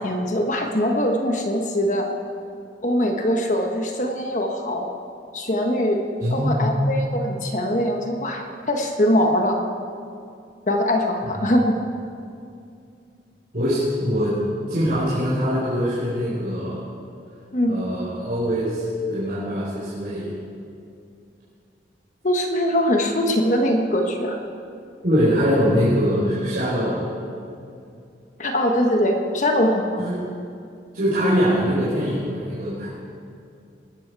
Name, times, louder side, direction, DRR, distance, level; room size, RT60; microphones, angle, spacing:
voice 1, 0.0-2.1 2.8-4.9 5.3-6.0 6.3-9.6 10.7-11.8 17.5-17.8 22.2-24.4 28.4-30.0, equal, 45° left, 3 dB, 1.2 m, -22 dB
voice 2, 6.2-6.7 13.5-14.4 14.7-16.8 17.7-20.3 25.0-27.1 30.0-30.2 30.9-32.9, equal, 55° right, -10 dB, 4.4 m, -22 dB
19.5 x 13.5 x 4.7 m, 2.5 s
head